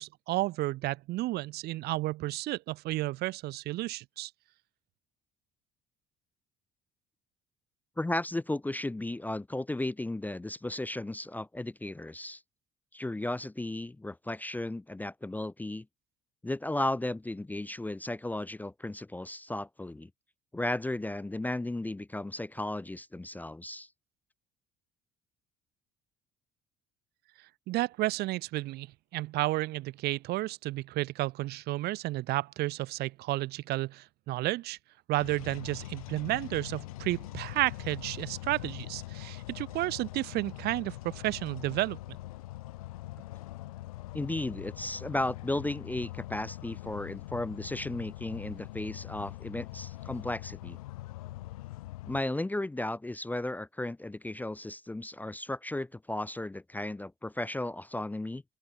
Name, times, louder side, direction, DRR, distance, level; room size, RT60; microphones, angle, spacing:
voice 1, 0.0-4.3 27.7-28.9 29.1-34.8 35.1-42.0, right 18 dB, 65° right, 0.9 m, -32 dB
voice 2, 8.0-12.4 12.9-15.9 16.4-20.1 20.5-23.9 44.1-50.8 52.1-58.4, left 1 dB, 10° left, 0.5 m, -35 dB
sound 1, 35.2-52.2, left 17 dB, 90° left, 1.4 m, -43 dB
open air
hypercardioid pair, 65°, 18 cm